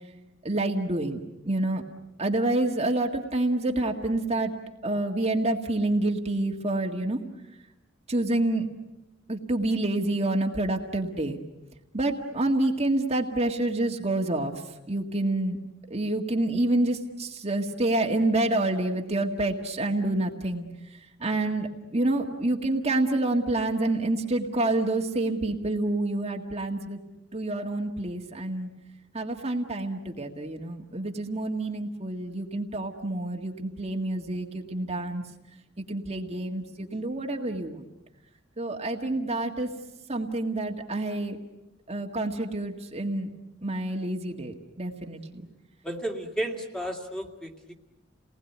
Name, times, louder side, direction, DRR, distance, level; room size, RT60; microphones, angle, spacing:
voice 1, 0.4-1.2 1.5-1.8 2.2-4.5 4.8-7.2 8.1-8.7 9.3-11.4 11.9-14.5 14.9-15.6 15.9-20.7 21.2-27.0 27.3-28.7 29.1-35.2 35.9-37.8 38.6-39.7 40.1-41.4 41.9-43.3 43.6-45.4, right 2 dB, 35° right, 1 dB, 1.9 m, -28 dB
voice 2, 45.8-47.7, right 1 dB, 5° left, 1 dB, 2.4 m, -33 dB
29.5 x 20.0 x 9.4 m, 1.0 s
head